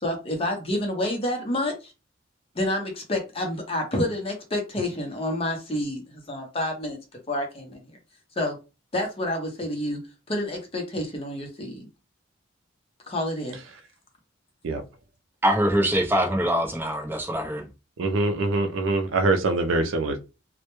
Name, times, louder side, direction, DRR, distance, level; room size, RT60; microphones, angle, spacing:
voice 1, 0.0-1.9 2.5-7.0 7.3-8.0 8.4-8.6 8.9-10.0 10.3-11.8 13.1-13.6, left 1 dB, 30° left, 0.6 m, -28 dB
voice 2, 15.4-17.7, equal, 10° right, 0.5 m, -23 dB
voice 3, 18.0-20.2, right 3 dB, 80° right, 0.4 m, -24 dB
2.1 x 2.1 x 2.9 m
head